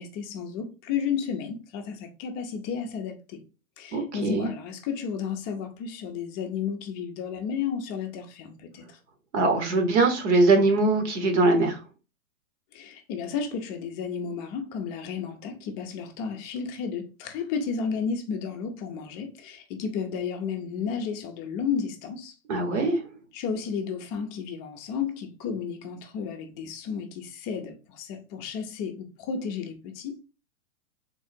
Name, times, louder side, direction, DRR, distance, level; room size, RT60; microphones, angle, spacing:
voice 1, 0.0-3.4 3.8-9.0 12.7-22.3 23.3-30.2, left 6 dB, 25° left, 0.5 m, -32 dB
voice 2, 3.9-4.5 9.3-11.8 22.5-23.0, right 3 dB, 55° right, 1.3 m, -22 dB
3.7 x 2.4 x 4.3 m
hypercardioid pair, 125°, 42 cm